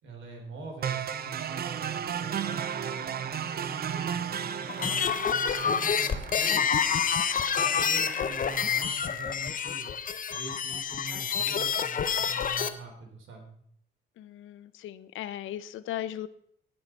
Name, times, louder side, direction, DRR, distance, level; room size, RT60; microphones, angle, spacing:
voice 1, 0.0-5.0 5.5-6.7 7.6-9.9 10.3-13.5, right 3 dB, 75° right, 2 dB, 3.6 m, -44 dB
sound 1, 0.8-8.8, right 8 dB, 50° right, 0.7 m, -35 dB
sound 2, 4.7-12.7, left 7 dB, 45° left, 0.9 m, -28 dB
voice 2, 14.2-16.3, left 12 dB, 80° left, 16 dB, 0.6 m, -37 dB
17.5 x 6.4 x 4.5 m, 0.67 s
cardioid pair, 90°, 20 cm